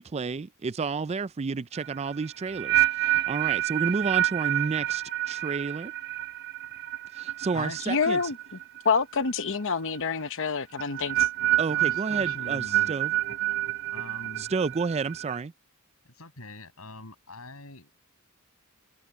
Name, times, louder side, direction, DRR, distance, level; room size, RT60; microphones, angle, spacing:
voice 1, 0.0-5.9 7.1-8.2 11.6-13.1 14.4-15.5, right 4 dB, 30° right, 0.4 m, -31 dB
sound 1, 1.8-8.9 9.1-9.6 10.8-15.4, right 15 dB, 50° right, 0.8 m, -28 dB
voice 2, 7.9-8.4 8.8-11.3, left 5 dB, 60° left, 1.0 m, -27 dB
voice 3, 11.7-12.9 13.9-14.5 16.1-18.1, left 2 dB, 75° left, 7.8 m, -42 dB
head